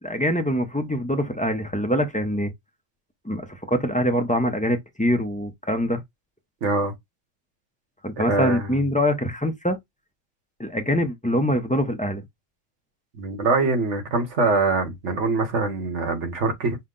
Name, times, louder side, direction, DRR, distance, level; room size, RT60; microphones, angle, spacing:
voice 1, 0.0-2.5 3.2-6.0 8.0-9.8 10.6-12.2, equal, 10° left, 0.4 m, -24 dB
voice 2, 6.6-6.9 8.3-8.8 13.2-16.8, right 3 dB, 65° right, 1.5 m, -23 dB
5.6 x 2.1 x 3.7 m
omnidirectional pair, 1.3 m